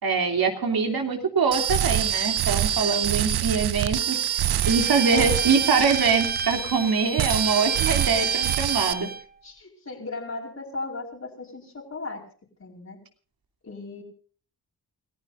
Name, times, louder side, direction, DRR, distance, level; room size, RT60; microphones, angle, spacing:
voice 1, 0.0-4.2 4.6-9.1, right 5 dB, 65° right, 4 dB, 3.0 m, -24 dB
sound 1, 1.5-6.9 7.2-8.9, right 10 dB, 85° right, 0.8 m, -25 dB
Bowed string instrument, 4.6-9.3, right 4 dB, 25° right, 0.7 m, -32 dB
voice 2, 5.1-5.5 9.4-12.2 12.6-13.0 13.6-14.0, left 3 dB, 45° left, -4 dB, 4.8 m, -36 dB
29.0 x 15.0 x 2.6 m, 0.42 s
cardioid pair, 75°, 38 cm